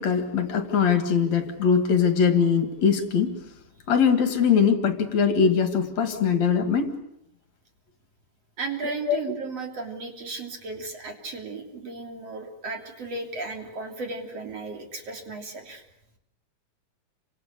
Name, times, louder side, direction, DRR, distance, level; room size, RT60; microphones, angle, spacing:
voice 1, 0.0-3.3 3.9-6.9 8.8-9.2, left 6 dB, 60° left, 8 dB, 3.1 m, -22 dB
voice 2, 8.6-15.8, right 3 dB, 50° right, 3 dB, 4.2 m, -35 dB
29.5 x 25.5 x 6.8 m, 0.80 s
omnidirectional pair, 3.6 m